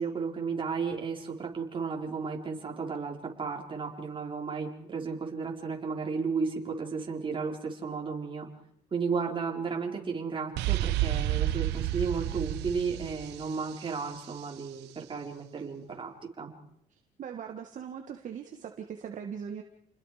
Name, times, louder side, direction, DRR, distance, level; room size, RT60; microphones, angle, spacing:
voice 1, 0.0-8.5 8.9-16.5, right 5 dB, 30° right, 1 dB, 4.5 m, -34 dB
sound 1, 10.6-14.3, right 14 dB, 85° right, 1.1 m, -30 dB
voice 2, 17.2-19.6, right 7 dB, 50° right, 4 dB, 1.8 m, -40 dB
30.0 x 21.0 x 5.1 m, 0.76 s
cardioid pair, 110°, 17 cm